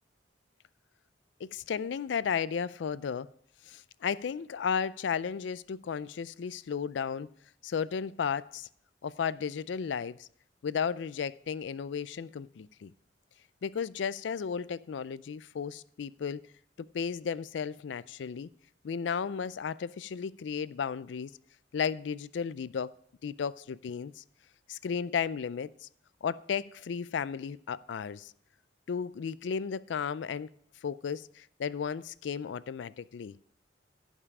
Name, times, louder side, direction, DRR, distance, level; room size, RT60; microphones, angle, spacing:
voice 1, 1.4-3.3 3.7-7.3 7.6-8.7 9.0-10.3 10.6-12.9 13.6-16.5 16.8-18.5 18.8-21.3 21.7-22.9 23.2-24.2 24.7-25.9 26.2-28.3 28.9-30.5 30.8-33.4, left 6 dB, 80° left, 0.4 m, -34 dB
15.5 x 5.5 x 4.8 m
head